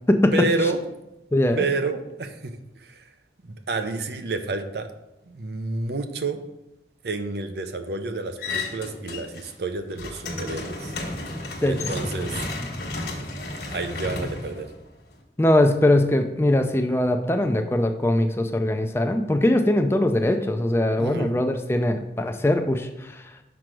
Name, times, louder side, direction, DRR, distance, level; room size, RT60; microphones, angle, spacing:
voice 1, 0.3-0.8 1.6-3.1 3.4-4.9 5.3-6.4 7.0-10.9 11.7-12.5 13.7-14.7 21.0-21.3, right 3 dB, 70° right, 8 dB, 0.6 m, -29 dB
voice 2, 1.3-1.6 11.6-11.9 12.6-12.8 15.4-23.2, left 1 dB, 15° left, 6 dB, 0.4 m, -21 dB
sound 1, 8.4-9.5 9.8-15.2, left 2 dB, 60° left, 1.3 m, -32 dB
6.0 x 5.0 x 4.6 m, 0.93 s
head